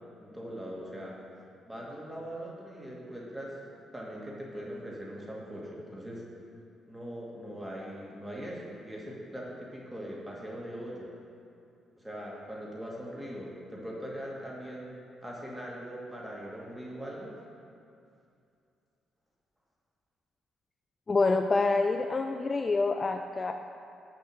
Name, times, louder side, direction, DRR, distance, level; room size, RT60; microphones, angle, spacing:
voice 1, 0.2-1.2 1.7-3.6 3.9-6.2 6.9-11.1 12.0-17.4, equal, 10° right, -4 dB, 1.9 m, -41 dB
voice 2, 21.1-23.5, left 3 dB, 30° left, 5 dB, 0.3 m, -27 dB
6.2 x 5.6 x 6.7 m, 2.5 s
cardioid pair, 90°, 0 cm